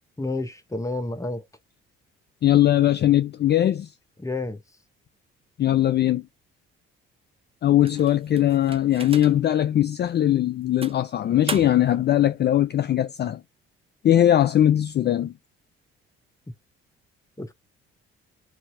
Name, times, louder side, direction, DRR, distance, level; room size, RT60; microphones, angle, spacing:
voice 1, 0.2-1.4 4.2-4.6 17.4-17.5, left 2 dB, 10° left, 1.0 m, -30 dB
voice 2, 2.4-3.9 5.6-6.2 7.6-13.4 14.0-15.3, left 12 dB, 35° left, 0.4 m, -20 dB
sound 1, 7.8-9.6 10.1-10.2 10.8-12.0, right 4 dB, 20° right, 0.7 m, -37 dB
2.8 x 2.7 x 2.6 m
hypercardioid pair, 55°, 30 cm